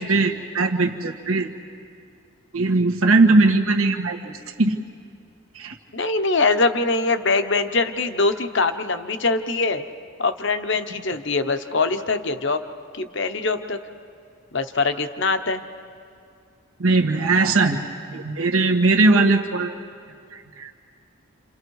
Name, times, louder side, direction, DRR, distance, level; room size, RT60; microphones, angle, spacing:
voice 1, 0.0-1.5 2.5-4.3 4.6-4.8 5.5-5.8 16.8-17.8 18.1-19.7 20.3-20.7, right 3 dB, 75° right, 3 dB, 1.5 m, -19 dB
voice 2, 5.9-9.8 10.2-12.6 12.9-13.8 14.5-15.6, left 3 dB, 55° left, 8 dB, 1.0 m, -23 dB
29.5 x 28.0 x 4.8 m, 2.4 s
head